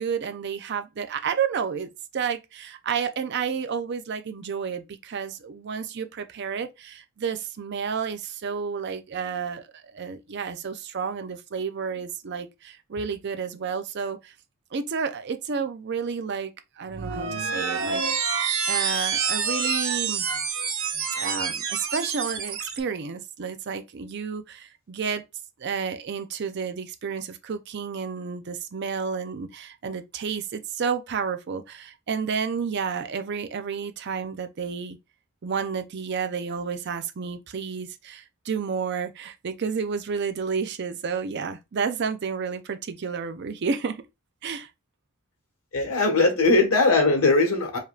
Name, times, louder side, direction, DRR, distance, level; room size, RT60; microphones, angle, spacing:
voice 1, 0.0-14.3 14.7-16.5 16.8-18.0 18.7-20.3 21.2-25.2 25.6-35.0 35.4-44.0 44.4-44.7, right 6 dB, 50° right, 0.4 m, -31 dB
sound 1, 16.9-22.8, right 6 dB, 75° right, 0.8 m, -27 dB
voice 2, 45.7-47.8, left 3 dB, 80° left, 1.4 m, -20 dB
4.8 x 2.9 x 2.3 m
head